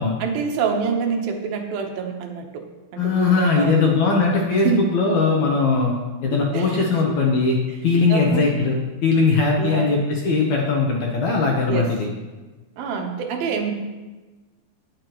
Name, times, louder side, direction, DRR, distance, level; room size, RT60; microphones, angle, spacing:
voice 1, 0.2-2.7 2.9-4.2 4.6-4.8 6.5-7.1 7.7-7.8 8.1-8.6 9.6-9.9 11.7-11.9 12.8-13.7, right 6 dB, 75° right, 3 dB, 2.8 m, -26 dB
voice 2, 3.0-5.9 6.2-7.6 7.8-12.1, left 4 dB, 60° left, -1 dB, 2.1 m, -20 dB
19.0 x 6.9 x 3.1 m, 1.2 s
omnidirectional pair, 4.4 m